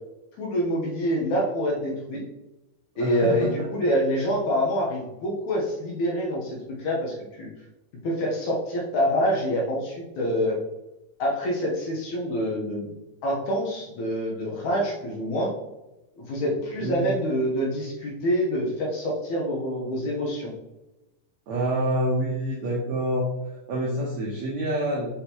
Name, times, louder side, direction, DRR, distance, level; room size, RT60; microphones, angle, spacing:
voice 1, 0.4-2.2 3.0-7.5 8.0-10.6 11.2-13.0 13.2-15.5 16.2-20.5, equal, 70° left, -3 dB, 1.9 m, -26 dB
voice 2, 2.9-3.7 16.8-17.2 21.5-25.1, right 1 dB, 80° right, -4 dB, 1.5 m, -27 dB
6.3 x 5.3 x 2.9 m, 0.99 s
omnidirectional pair, 4.6 m